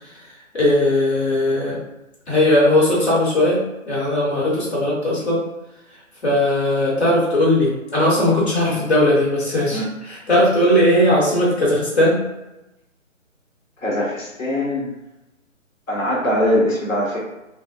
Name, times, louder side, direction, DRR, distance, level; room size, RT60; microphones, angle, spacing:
voice 1, 0.5-1.8 2.3-5.4 6.2-12.2, left 1 dB, 50° left, -5 dB, 1.4 m, -18 dB
voice 2, 13.8-14.9 15.9-17.2, left 1 dB, 75° left, -5 dB, 1.2 m, -21 dB
3.5 x 2.5 x 2.3 m, 0.96 s
hypercardioid pair, 165°, 40 cm